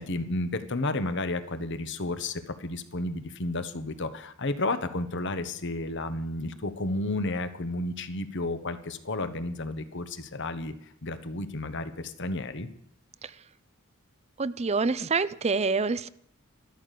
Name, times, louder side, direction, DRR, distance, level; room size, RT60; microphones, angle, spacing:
voice 1, 0.0-12.7, left 2 dB, 60° left, 11 dB, 1.3 m, -32 dB
voice 2, 14.4-16.1, right 4 dB, 30° right, 17 dB, 0.5 m, -27 dB
13.0 x 13.0 x 6.8 m, 0.68 s
head